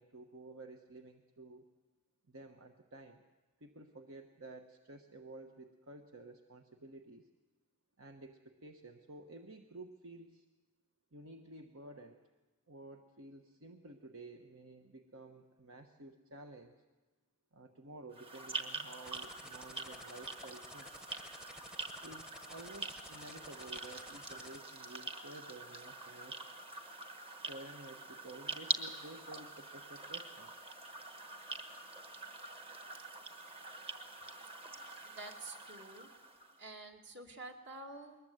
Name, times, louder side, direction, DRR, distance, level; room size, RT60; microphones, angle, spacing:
voice 1, 0.0-1.7 2.3-3.2 3.6-7.3 8.0-10.4 11.1-12.2 12.7-16.8 17.5-20.9 22.0-26.4 27.5-30.6, right 2 dB, 70° right, 5 dB, 1.1 m, -52 dB
sound 1, 18.1-36.6, right 3 dB, 25° right, 1.3 m, -45 dB
sound 2, 19.0-24.6, left 1 dB, 5° right, 0.8 m, -53 dB
voice 2, 35.0-36.1 36.6-38.2, right 2 dB, 55° right, 3 dB, 2.3 m, -49 dB
22.0 x 20.0 x 7.9 m, 1.2 s
head